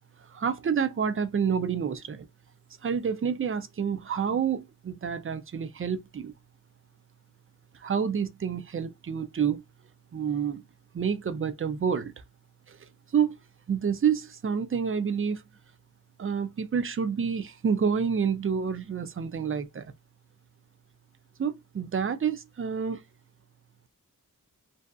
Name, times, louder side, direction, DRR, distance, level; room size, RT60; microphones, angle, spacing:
voice 1, 0.3-2.3 2.8-6.3 7.8-9.6 10.1-10.6 10.9-12.1 12.7-13.3 13.7-15.4 16.2-19.9 21.4-23.0, right 7 dB, 40° right, 0.4 m, -28 dB
2.6 x 2.3 x 2.2 m
wide cardioid pair, 75°, 33 cm